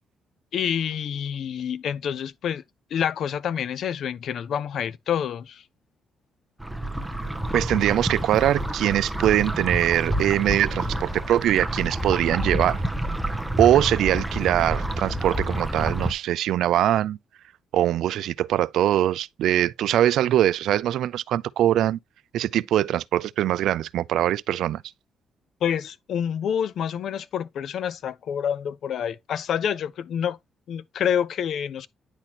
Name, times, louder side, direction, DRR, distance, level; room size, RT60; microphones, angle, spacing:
voice 1, 0.5-2.6 2.9-5.6 25.6-30.4 30.7-31.9, left 8 dB, 65° left, 0.5 m, -27 dB
sound 1, 6.6-16.1, right 1 dB, 5° right, 0.7 m, -28 dB
voice 2, 7.5-12.8 13.6-17.2 17.7-22.0 22.3-24.8, right 12 dB, 80° right, 0.3 m, -22 dB
9.9 x 4.2 x 2.8 m
cardioid pair, 90°, 0 cm